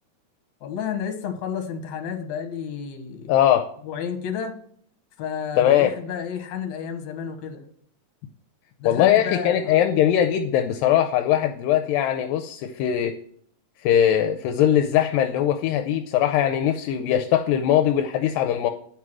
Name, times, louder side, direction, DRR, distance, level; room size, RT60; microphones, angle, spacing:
voice 1, 0.6-3.3 3.8-4.5 5.2-7.6 8.8-9.8, left 7 dB, 65° left, 4 dB, 2.2 m, -31 dB
voice 2, 3.3-3.7 5.6-5.9 8.9-13.2 13.8-18.7, left 10 dB, 85° left, 7 dB, 2.2 m, -20 dB
9.9 x 4.7 x 6.1 m, 0.63 s
omnidirectional pair, 4.0 m